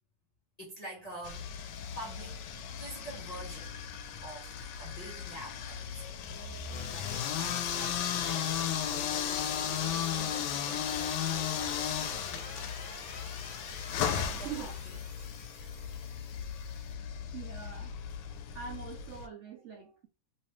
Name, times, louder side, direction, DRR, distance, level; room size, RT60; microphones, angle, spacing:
voice 1, 0.6-1.6 1.9-2.4 2.8-3.8 4.1-6.1 6.9-12.5 14.0-15.0, right 1 dB, 35° left, 0.6 m, -47 dB
sound 1, 1.2-19.3, left 8 dB, 75° left, 1.1 m, -36 dB
sound 2, 6.7-16.9, left 4 dB, 55° left, 1.0 m, -46 dB
voice 2, 17.3-17.9 18.5-20.1, right 7 dB, 75° right, 0.6 m, -43 dB
3.2 x 2.8 x 3.0 m
omnidirectional pair, 2.0 m